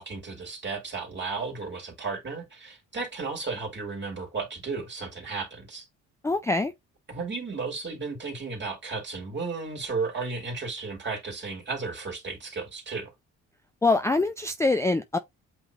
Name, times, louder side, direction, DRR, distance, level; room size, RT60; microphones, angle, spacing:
voice 1, 0.0-5.9 7.1-13.1, right 4 dB, 35° right, 2.3 m, -34 dB
voice 2, 6.2-6.7 13.8-15.2, left 3 dB, 10° left, 0.4 m, -24 dB
8.0 x 3.0 x 2.3 m
cardioid pair, 90°, 30 cm